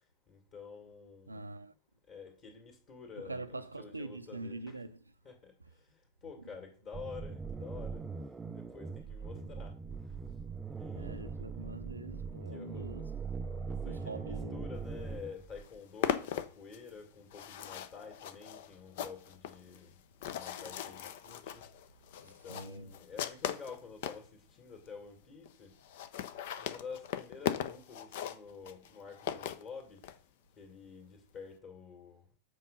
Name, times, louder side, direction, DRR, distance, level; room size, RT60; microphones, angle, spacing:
voice 1, 0.3-1.5 2.1-4.7 5.2-5.5 6.2-8.0 8.5-9.7 10.7-11.3 12.5-13.1 13.7-20.0 20.3-21.6 22.2-25.7 26.6-30.0 30.6-32.2, left 5 dB, 35° left, 2.2 m, -49 dB
voice 2, 1.3-1.7 3.2-5.2 5.6-5.7 6.4-6.6 9.3-9.6 10.9-13.1 13.8-14.7 22.0-23.0, right 2 dB, 80° right, 0.5 m, -45 dB
sound 1, 6.9-15.8, right 5 dB, 15° right, 0.4 m, -41 dB
sound 2, 15.1-15.2 15.4-24.3 24.9-25.0 25.2-25.3 25.5-25.6 25.8-30.2, left 10 dB, 55° left, 0.6 m, -39 dB
7.6 x 4.1 x 5.3 m
figure-of-eight pair, 90°, 0 cm